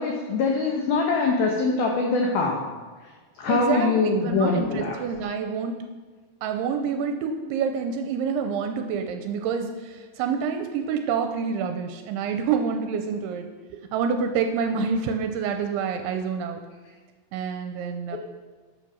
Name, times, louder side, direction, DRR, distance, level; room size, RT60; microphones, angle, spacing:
voice 1, 0.0-2.6 3.4-5.0 18.1-18.2, left 4 dB, 75° left, 0 dB, 2.2 m, -23 dB
voice 2, 3.5-5.8 6.4-13.5 13.9-16.6 17.3-18.2, right 6 dB, 80° right, 5 dB, 2.8 m, -27 dB
13.0 x 7.1 x 6.3 m, 1.4 s
omnidirectional pair, 5.9 m